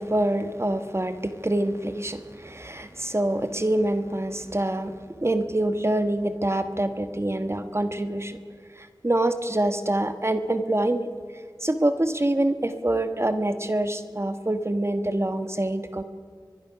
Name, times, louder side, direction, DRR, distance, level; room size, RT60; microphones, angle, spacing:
voice 1, 0.0-8.4 8.8-11.1 11.6-16.0, right 1 dB, 35° right, 9 dB, 1.3 m, -26 dB
23.5 x 22.0 x 5.8 m, 2.1 s
wide cardioid pair, 45°, 8 cm